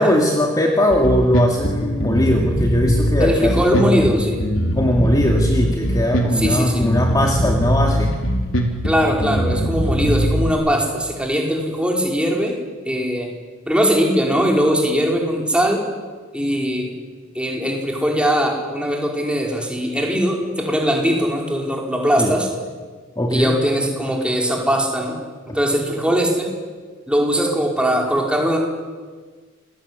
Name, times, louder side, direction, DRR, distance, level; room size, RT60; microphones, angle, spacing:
voice 1, 0.0-4.1 4.7-8.1 22.2-22.3 23.2-23.6, left 1 dB, 20° left, 1 dB, 2.4 m, -19 dB
Bass guitar, 0.9-10.5, equal, 75° left, 3.8 m, -21 dB
voice 2, 3.2-4.4 6.3-6.8 8.8-12.5 12.8-13.3 13.7-15.8 16.3-16.9 17.3-22.5 23.3-25.2 25.5-26.5 27.1-28.6, equal, 5° right, 0 dB, 5.0 m, -20 dB
28.0 x 20.0 x 9.8 m, 1.5 s
head